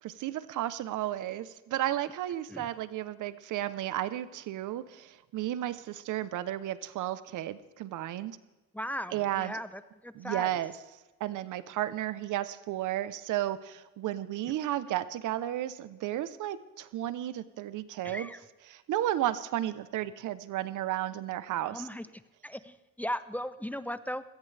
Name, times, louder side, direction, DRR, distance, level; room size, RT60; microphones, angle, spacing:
voice 1, 0.0-8.4 9.1-9.6 10.1-10.7 11.2-18.3 18.7-21.9, right 13 dB, 80° right, 15 dB, 0.9 m, -33 dB
voice 2, 8.7-10.6 18.0-18.4 21.7-22.1 22.4-24.2, equal, 5° left, 13 dB, 0.8 m, -37 dB
20.5 x 17.5 x 3.4 m, 1.1 s
cardioid pair, 90°, 30 cm